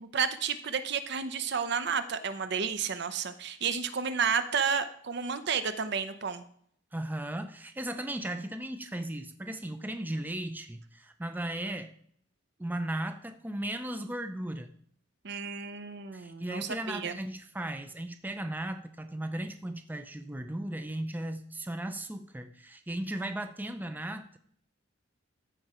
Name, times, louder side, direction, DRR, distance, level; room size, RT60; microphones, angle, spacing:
voice 1, 0.0-6.4 15.2-17.2, right 6 dB, 60° right, 10 dB, 0.7 m, -31 dB
voice 2, 6.9-11.9 12.6-14.7 16.1-24.4, right 1 dB, 10° right, 8 dB, 0.5 m, -36 dB
14.0 x 4.8 x 4.3 m, 0.64 s
head